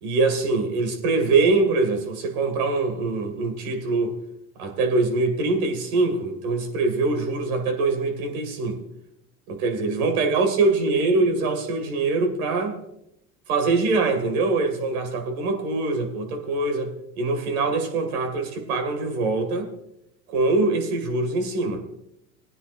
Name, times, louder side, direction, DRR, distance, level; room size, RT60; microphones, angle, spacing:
voice 1, 0.0-4.1 4.6-8.8 9.5-12.8 13.5-19.7 20.3-21.8, right 3 dB, 80° right, 2.2 m, -23 dB
19.0 x 9.9 x 2.5 m
hypercardioid pair, 85°, 42 cm